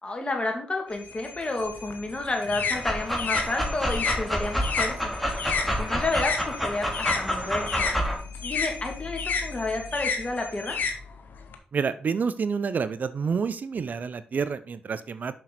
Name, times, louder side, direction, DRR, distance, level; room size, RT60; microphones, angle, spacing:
voice 1, 0.0-5.1 5.8-7.8 8.4-10.8, left 2 dB, 35° left, 2 dB, 2.6 m, -30 dB
sound 1, 0.9-10.9, left 4 dB, 85° left, 2.8 m, -46 dB
sound 2, 1.7-6.4 6.7-11.6, left 5 dB, 70° left, 1.0 m, -31 dB
Dog, 2.7-8.1, equal, ahead, 2.6 m, -29 dB
voice 2, 11.7-15.3, right 5 dB, 60° right, 13 dB, 0.5 m, -28 dB
6.7 x 5.9 x 4.2 m, 0.43 s
supercardioid pair, 40°, 3 cm